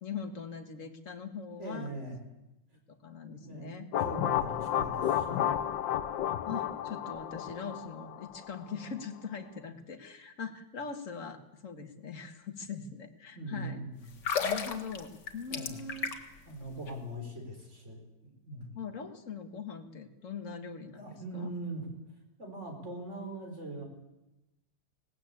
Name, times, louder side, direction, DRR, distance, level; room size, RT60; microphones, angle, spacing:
voice 1, 0.0-1.9 2.9-3.9 4.9-5.2 6.4-13.9 14.3-16.1 18.8-21.0 21.3-21.5, left 5 dB, 45° left, 7 dB, 2.0 m, -41 dB
voice 2, 1.6-2.3 3.3-3.7 4.0-5.5 13.3-14.2 15.5-15.9 16.5-18.8 20.9-21.9 22.4-23.8, right 1 dB, 40° right, 3 dB, 4.9 m, -41 dB
sound 1, 3.9-8.7, left 10 dB, 85° left, 1.6 m, -32 dB
sound 2, 14.1-16.4 16.7-16.9, left 6 dB, 65° left, 2.3 m, -33 dB
19.0 x 18.5 x 8.5 m, 0.97 s
omnidirectional pair, 2.0 m